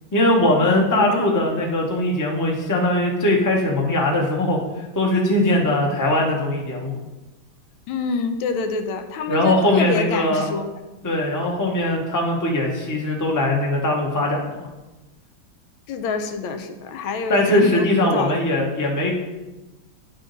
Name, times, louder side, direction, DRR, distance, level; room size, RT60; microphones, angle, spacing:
voice 1, 0.1-4.6 4.9-7.0 9.3-10.5 11.0-14.7 17.3-19.1, left 1 dB, 20° left, -1 dB, 0.5 m, -20 dB
voice 2, 7.9-10.6 15.9-18.3, left 4 dB, 90° left, 6 dB, 1.4 m, -27 dB
9.9 x 3.6 x 3.9 m, 1.1 s
omnidirectional pair, 2.1 m